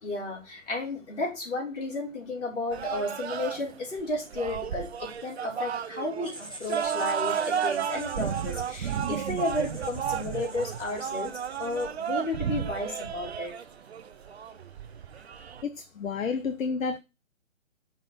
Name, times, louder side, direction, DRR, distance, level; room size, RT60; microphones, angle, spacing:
voice 1, 0.0-11.3 11.6-13.5, left 2 dB, 65° left, 3.4 m, -33 dB
sound 1, 2.7-15.6, right 8 dB, 55° right, 0.6 m, -33 dB
Writing, 6.2-12.2, right 1 dB, 5° left, 0.4 m, -47 dB
voice 2, 15.6-17.0, left 5 dB, 80° left, 0.7 m, -30 dB
5.4 x 3.9 x 5.5 m
figure-of-eight pair, 135°, 40 cm